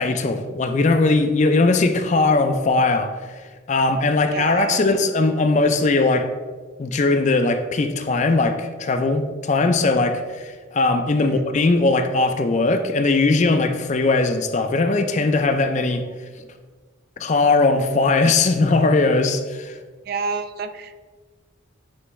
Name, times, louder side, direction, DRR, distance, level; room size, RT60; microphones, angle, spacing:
voice 1, 0.0-3.1 3.7-6.3 6.8-16.0 17.2-19.8, left 3 dB, 35° left, 0.4 m, -19 dB
voice 2, 4.3-4.9 11.2-11.4 20.1-20.9, right 5 dB, 50° right, 0.3 m, -29 dB
9.4 x 3.3 x 3.1 m
head